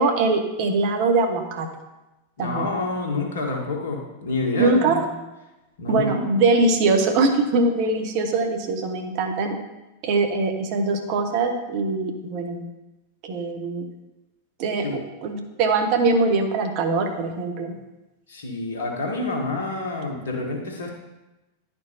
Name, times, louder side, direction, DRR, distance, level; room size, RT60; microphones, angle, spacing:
voice 1, 0.0-1.7 2.4-2.7 4.6-5.0 5.9-9.6 10.0-12.6 13.2-13.9 14.6-17.7, right 3 dB, 45° right, 5 dB, 0.8 m, -22 dB
voice 2, 2.4-5.0 5.8-6.2 14.8-15.0 18.3-20.9, left 2 dB, 65° left, 1 dB, 1.3 m, -28 dB
11.0 x 4.5 x 2.8 m, 1.0 s
figure-of-eight pair, 90°, 0 cm